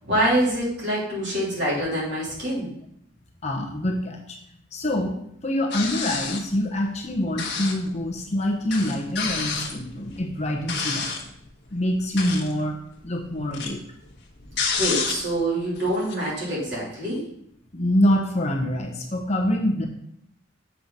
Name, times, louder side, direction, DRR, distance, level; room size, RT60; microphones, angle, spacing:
voice 1, 0.0-2.7 14.8-17.2, right 1 dB, 55° right, -6 dB, 3.2 m, -25 dB
voice 2, 3.4-4.4 4.7-11.1 11.7-12.8 13.0-13.8 17.7-19.8, left 1 dB, 35° left, 1 dB, 0.9 m, -25 dB
sound 1, 5.7-6.6 7.4-7.9 8.2-8.3 8.7-11.3 12.0-12.6 12.9-15.4 15.8-16.2, left 5 dB, 55° left, 1.3 m, -29 dB
7.3 x 5.8 x 3.9 m, 0.72 s
head